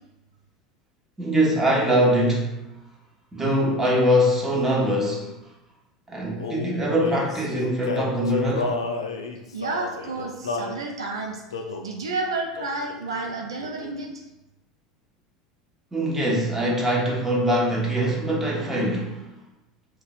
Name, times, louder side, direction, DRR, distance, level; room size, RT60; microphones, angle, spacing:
voice 1, 1.2-2.7 3.3-5.3 6.1-8.8 15.9-19.3, equal, 10° right, -3 dB, 1.1 m, -23 dB
Male singing, 6.4-10.8 11.5-11.9 12.6-12.8 13.1-14.1, left 3 dB, 80° left, 0.4 m, -32 dB
voice 2, 9.5-11.4 11.8-14.2, right 3 dB, 80° right, 1 dB, 0.5 m, -30 dB
3.8 x 2.4 x 4.0 m, 0.93 s
figure-of-eight pair, 80°, 3 cm